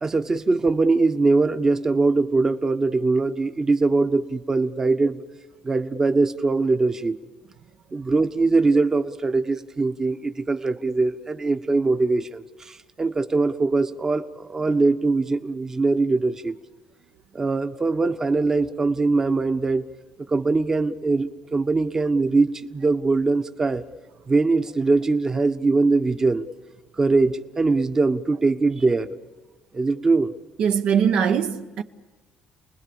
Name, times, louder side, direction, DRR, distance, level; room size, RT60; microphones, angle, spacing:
voice 1, 0.0-5.2 5.6-7.2 7.9-16.5 17.3-19.8 20.3-23.8 24.3-26.4 27.0-29.1 29.7-30.3, right 3 dB, 25° right, 1.0 m, -22 dB
voice 2, 30.6-31.8, right 7 dB, 70° right, 1.0 m, -21 dB
30.0 x 20.0 x 7.1 m
cardioid pair, 100°, 2 cm